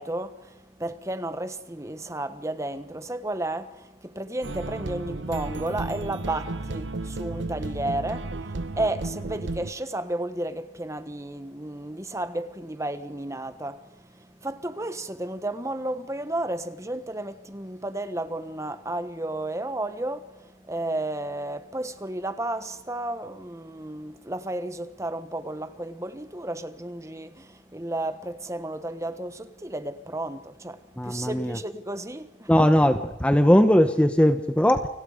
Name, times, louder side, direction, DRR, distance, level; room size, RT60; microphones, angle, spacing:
voice 1, 0.0-32.8, right 1 dB, 15° right, 1.3 m, -33 dB
sound 1, 4.4-9.7, right 2 dB, 70° right, 0.9 m, -33 dB
voice 2, 31.0-31.6 32.5-34.9, equal, 5° left, 0.9 m, -19 dB
30.0 x 25.0 x 5.1 m
head